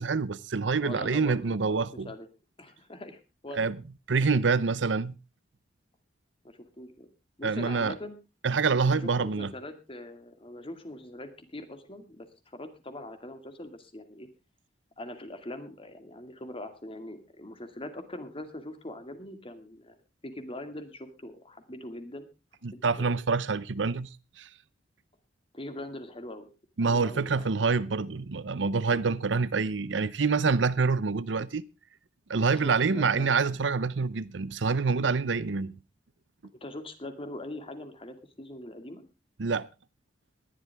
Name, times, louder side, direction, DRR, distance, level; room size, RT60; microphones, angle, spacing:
voice 1, 0.0-2.1 3.5-3.8 4.1-5.1 7.4-7.9 8.4-9.5 22.6-24.1 24.4-24.5 26.8-31.6 32.3-35.7 39.4-39.7, right 4 dB, 80° right, 0.7 m, -26 dB
voice 2, 0.8-2.3 2.6-3.7 6.4-7.1 7.4-8.2 8.8-14.3 15.0-19.9 20.2-22.3 22.7-23.2 25.5-26.5 26.9-27.7 32.6-33.4 36.6-39.0, left 1 dB, 30° left, 2.2 m, -42 dB
19.5 x 11.5 x 3.5 m
head